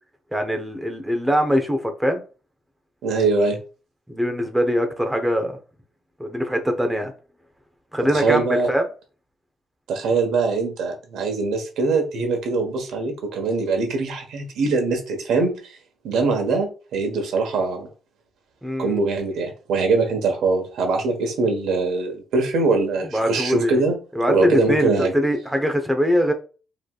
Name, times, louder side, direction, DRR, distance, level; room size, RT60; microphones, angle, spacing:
voice 1, 0.3-2.2 4.1-5.6 6.2-7.1 7.9-8.9 18.6-19.0 23.1-23.8 24.1-26.3, equal, 5° right, 0.9 m, -22 dB
voice 2, 3.0-3.6 8.1-8.7 9.9-15.5 16.0-17.9 18.8-23.9 24.3-25.1, right 3 dB, 80° right, 1.3 m, -22 dB
6.2 x 3.3 x 2.4 m
cardioid pair, 90°, 0 cm